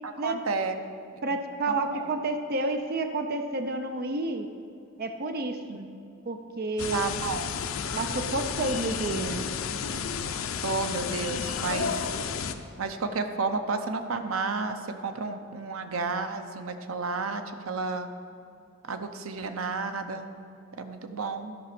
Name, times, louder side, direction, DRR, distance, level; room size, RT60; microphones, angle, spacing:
voice 1, 0.0-0.8 1.3-1.4 1.7-2.1 5.7-5.8 6.9-7.5 10.6-12.0 12.8-18.1 18.8-20.3 20.8-21.5, right 4 dB, 85° right, 8 dB, 0.7 m, -31 dB
voice 2, 1.2-4.5 5.0-5.9 6.3-7.1 7.9-9.5, right 2 dB, 50° right, 6 dB, 0.6 m, -30 dB
sound 1, 6.8-12.5, left 6 dB, 75° left, 0.6 m, -32 dB
12.5 x 5.9 x 5.9 m, 2.5 s
head